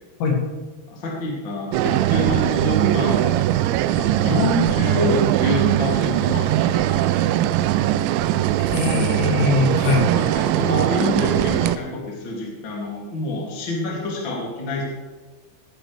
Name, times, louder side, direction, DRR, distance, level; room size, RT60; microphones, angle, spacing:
voice 1, 0.9-3.3 3.9-7.4 10.1-14.8, left 2 dB, 30° left, -3 dB, 2.7 m, -27 dB
sound 1, 1.7-11.8, right 13 dB, 85° right, 2.8 m, -20 dB
voice 2, 8.7-10.1, left 5 dB, 70° left, -2 dB, 4.6 m, -21 dB
17.0 x 11.5 x 3.4 m, 1.3 s
omnidirectional pair, 5.4 m